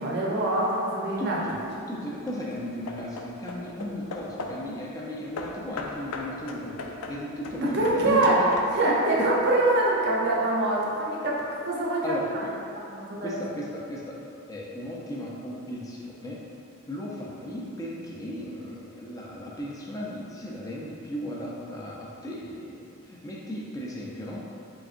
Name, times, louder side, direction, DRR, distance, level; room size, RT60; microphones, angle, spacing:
voice 1, 0.0-1.4 7.6-8.4 8.7-12.2 12.9-13.4, right 2 dB, 50° right, -4 dB, 0.6 m, -24 dB
Hammer / Wood, 1.1-1.6 2.3-4.7 5.4-9.0, left 3 dB, 85° left, 0.4 m, -39 dB
voice 2, 1.2-1.6 1.9-8.5 8.8-9.3 12.0-12.5 13.2-14.2 14.5-16.4 16.9-24.4, left 1 dB, 15° left, -4 dB, 0.4 m, -36 dB
3.9 x 3.5 x 2.4 m, 2.6 s
head